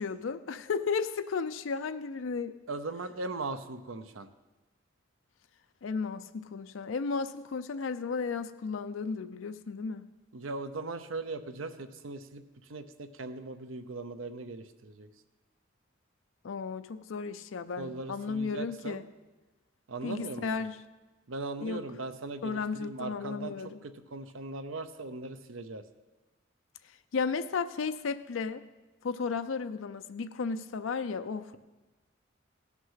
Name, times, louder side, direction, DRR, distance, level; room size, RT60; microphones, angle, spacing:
voice 1, 0.0-2.6 5.8-10.0 16.4-19.1 20.0-20.8 21.6-21.8 22.4-23.8 27.1-28.6 29.0-31.6, left 5 dB, 70° left, 10 dB, 0.5 m, -34 dB
voice 2, 2.7-4.3 10.3-12.4 12.7-15.1 17.8-19.0 19.9-20.5 21.3-23.6 23.8-25.8, right 3 dB, 80° right, 10 dB, 0.7 m, -39 dB
16.5 x 6.1 x 5.7 m, 1.2 s
head